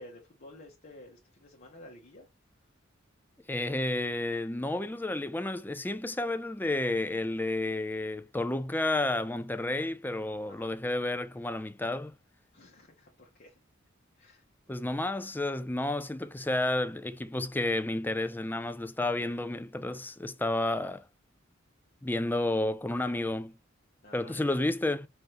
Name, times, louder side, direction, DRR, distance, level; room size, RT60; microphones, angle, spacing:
voice 1, 0.0-2.3 10.5-10.7 12.5-13.6 14.2-14.4 19.0-19.5 24.0-24.6, left 1 dB, 45° left, 1.2 m, -52 dB
voice 2, 3.5-12.1 14.7-21.0 22.0-23.6 24.1-25.1, left 2 dB, 10° left, 0.4 m, -31 dB
5.3 x 3.1 x 3.1 m
head